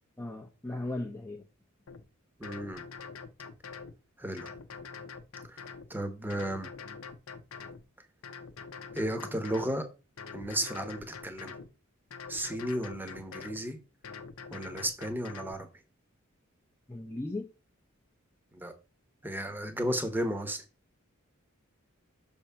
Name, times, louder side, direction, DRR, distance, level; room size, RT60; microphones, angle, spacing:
voice 1, 0.2-1.4 16.9-17.5, left 2 dB, 10° left, 0.7 m, -37 dB
sound 1, 1.9-2.0 2.4-3.9 4.4-5.9 6.3-7.8 8.2-9.8 10.2-11.7 12.1-13.6 14.0-15.6, left 5 dB, 70° left, 0.7 m, -45 dB
voice 2, 2.4-2.8 4.2-4.5 5.5-5.6 5.9-6.7 8.9-9.9 10.3-11.5 12.3-13.8 14.5-15.7 18.5-18.7 19.2-20.6, right 1 dB, 10° right, 1.0 m, -34 dB
6.3 x 3.6 x 5.6 m
head